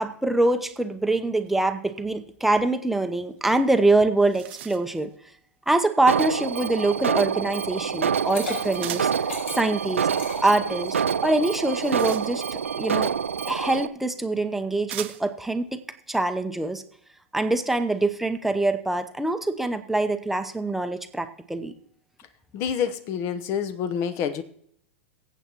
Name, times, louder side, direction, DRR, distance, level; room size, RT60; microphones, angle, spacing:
voice 1, 0.0-5.1 5.7-9.1 9.5-10.1 10.4-10.9 11.2-13.1 13.5-15.8 16.1-16.8 17.3-21.7, right 2 dB, 5° right, 7 dB, 0.8 m, -24 dB
sound 1, 4.2-5.0 8.8-9.3 11.5-12.7 13.8-13.9 14.9-15.4, right 14 dB, 60° right, 0.8 m, -39 dB
Alarm, 6.1-13.9, right 7 dB, 80° right, 0.4 m, -27 dB
Liquid, 8.0-11.1, left 2 dB, 65° left, 5.1 m, -36 dB
voice 2, 22.5-24.4, left 8 dB, 40° left, 12 dB, 0.9 m, -27 dB
22.5 x 8.0 x 3.0 m, 0.66 s
figure-of-eight pair, 100°, 7 cm